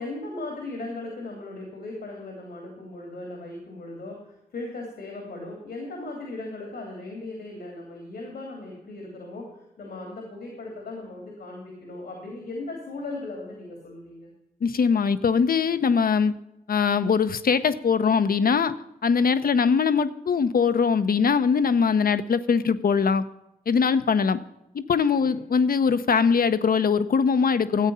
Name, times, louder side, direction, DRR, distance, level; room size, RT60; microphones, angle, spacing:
voice 1, 0.0-9.5 9.8-14.3 25.1-25.4, left 2 dB, 85° left, 0 dB, 2.8 m, -37 dB
voice 2, 14.6-16.3 16.7-18.8 19.0-23.2 23.7-24.4 24.7-27.9, left 6 dB, 65° left, 12 dB, 0.7 m, -21 dB
13.5 x 8.2 x 5.5 m, 0.89 s
cardioid pair, 45°, 16 cm